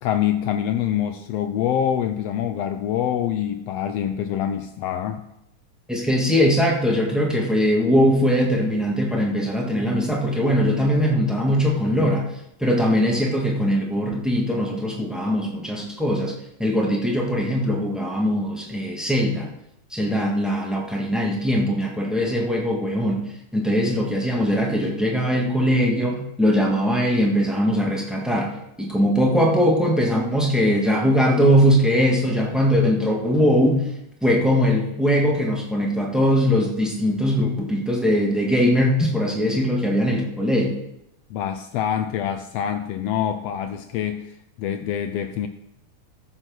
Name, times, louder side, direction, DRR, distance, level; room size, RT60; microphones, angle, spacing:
voice 1, 0.0-5.2 41.3-44.3 44.6-45.5, left 10 dB, 85° left, 8 dB, 1.4 m, -25 dB
voice 2, 5.9-12.3 12.6-16.3 16.6-19.5 19.9-23.2 23.5-28.5 28.8-33.9 34.2-40.8, equal, ahead, -1 dB, 0.6 m, -21 dB
14.5 x 6.3 x 6.2 m, 0.82 s
omnidirectional pair, 3.5 m